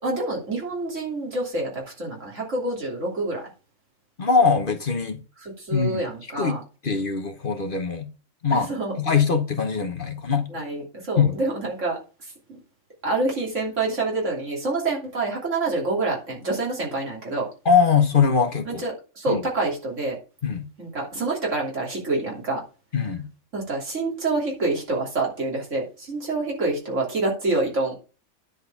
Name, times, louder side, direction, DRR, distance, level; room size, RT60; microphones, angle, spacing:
voice 1, 0.0-3.5 5.4-6.6 8.5-8.9 10.5-12.0 12.5-12.6 13.0-17.5 18.7-20.2 20.8-22.6 23.5-27.9, right 2 dB, 75° right, 3.3 m, -27 dB
voice 2, 4.2-5.2 5.7-6.0 6.4-6.5 6.8-8.1 8.4-8.7 9.0-10.5 11.2-11.4 17.6-18.8 19.3-19.4 20.4-20.7 22.9-23.3, left 5 dB, 45° left, 1.2 m, -22 dB
10.0 x 4.7 x 7.0 m
omnidirectional pair, 1.3 m